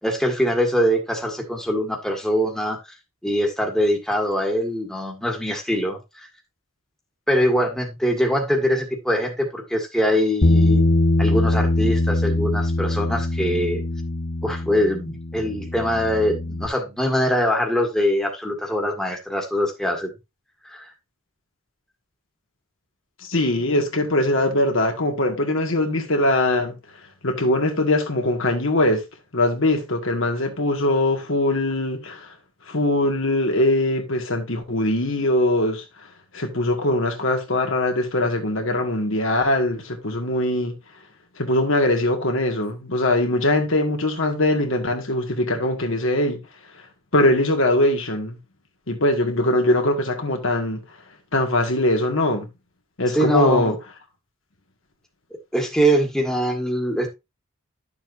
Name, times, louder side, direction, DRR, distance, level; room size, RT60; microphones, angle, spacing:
voice 1, 0.0-2.8 3.2-6.3 7.3-10.8 11.2-13.8 14.4-20.1 20.6-20.9 53.1-53.7 55.5-57.1, equal, 5° left, 1.7 m, -23 dB
Bass guitar, 10.4-16.7, left 1 dB, 45° left, 0.8 m, -22 dB
voice 2, 23.2-26.8 27.2-29.0 29.3-32.3 32.7-35.8 36.3-40.8 41.4-46.4 47.1-48.4 48.9-50.8 51.3-52.5 53.0-53.8, left 1 dB, 65° left, 1.9 m, -21 dB
11.5 x 7.1 x 2.6 m
head